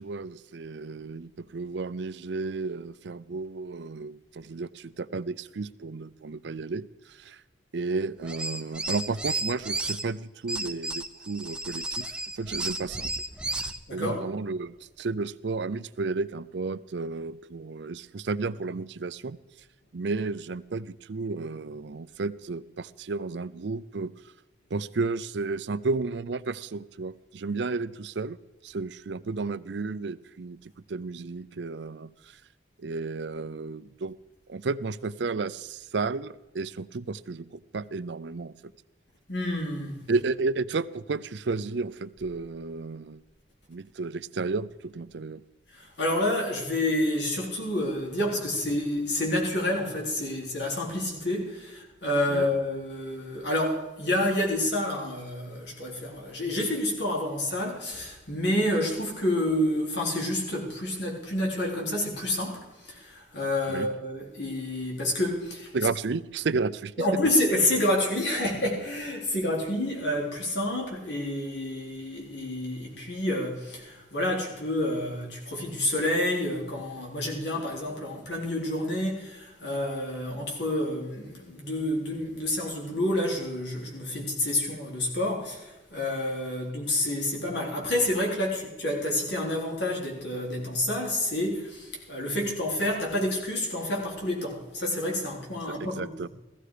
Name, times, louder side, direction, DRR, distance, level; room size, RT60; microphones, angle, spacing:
voice 1, 0.0-7.4 7.7-13.1 13.5-19.4 19.9-24.1 24.7-28.4 28.6-32.4 32.8-34.2 34.5-38.5 40.1-43.2 43.7-45.4 52.3-52.5 63.7-63.9 65.7-66.9 95.7-96.3, right 3 dB, 80° right, 16 dB, 0.5 m, -32 dB
sound 1, 8.2-10.0 10.5-13.8, right 2 dB, 5° right, 0.5 m, -33 dB
voice 2, 13.9-14.2 39.3-40.0 45.7-65.7 67.0-96.3, left 1 dB, 80° left, -1 dB, 4.0 m, -29 dB
16.0 x 14.5 x 5.0 m, 1.1 s
head